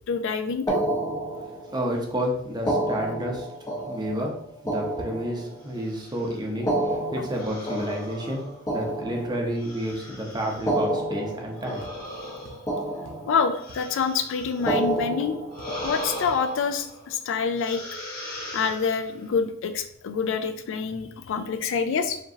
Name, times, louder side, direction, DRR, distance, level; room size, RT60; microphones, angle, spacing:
voice 1, 0.1-0.8 13.3-15.4 15.8-17.8 18.5-22.2, left 5 dB, 60° left, 9 dB, 0.4 m, -26 dB
sound 1, 0.7-1.9 2.5-5.9 6.5-9.8 10.5-12.4 12.7-13.7 14.5-16.4, right 1 dB, 15° left, 0.7 m, -30 dB
voice 2, 1.7-3.5 3.8-4.3 4.6-11.9, equal, 20° right, 0 dB, 0.7 m, -30 dB
sound 2, 5.7-6.4 7.3-8.9 9.6-10.8 11.5-14.9 15.5-17.1 17.6-19.3, left 1 dB, 45° left, 1.5 m, -40 dB
sound 3, 11.8-12.0 12.4-12.7 13.0-13.3 13.7-13.9 14.2-14.7 15.0-15.1 15.6-15.8 16.2-16.4, equal, 60° right, 0.9 m, -47 dB
5.0 x 2.9 x 2.8 m, 0.70 s
head